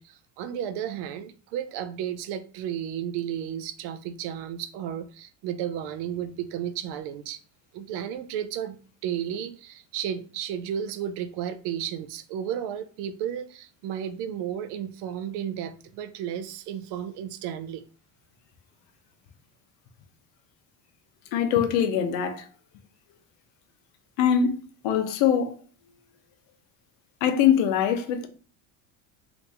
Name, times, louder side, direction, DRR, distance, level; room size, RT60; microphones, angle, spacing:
voice 1, 0.0-7.4 7.7-17.8, right 9 dB, 65° right, 0.5 m, -33 dB
voice 2, 21.3-22.5 24.2-24.6 24.8-25.5 27.2-28.3, left 8 dB, 90° left, 0.8 m, -22 dB
2.9 x 2.6 x 3.4 m
cardioid pair, 155°, 44 cm